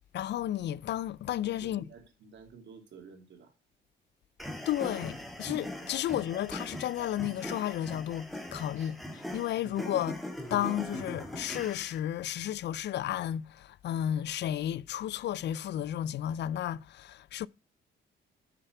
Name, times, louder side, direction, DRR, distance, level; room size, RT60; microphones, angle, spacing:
voice 1, 0.1-1.8 4.7-10.2 10.5-17.5, left 11 dB, 60° left, 0.4 m, -33 dB
voice 2, 1.6-3.5 6.1-6.2 8.8-8.9 9.6-9.8, right 5 dB, 65° right, 2.6 m, -52 dB
sound 1, 4.4-12.0, left 1 dB, ahead, 1.9 m, -40 dB
6.8 x 5.7 x 4.6 m
cardioid pair, 90°, 20 cm